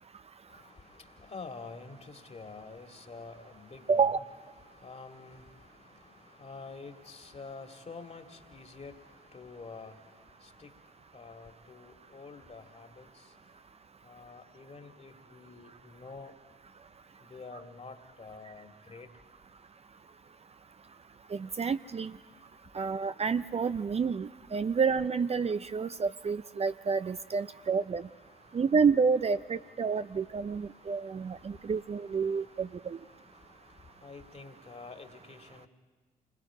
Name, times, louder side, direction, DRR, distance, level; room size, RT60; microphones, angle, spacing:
voice 1, 0.5-4.2 4.5-10.7 11.1-13.4 14.0-16.3 17.2-19.1 27.5-28.7 29.7-35.7, left 4 dB, 35° left, 5 dB, 2.4 m, -49 dB
voice 2, 3.9-4.2 21.3-22.1 22.7-28.0 28.5-33.0, right 5 dB, 35° right, 12 dB, 0.6 m, -29 dB
28.0 x 21.0 x 5.0 m, 1.4 s
hypercardioid pair, 45°, 18 cm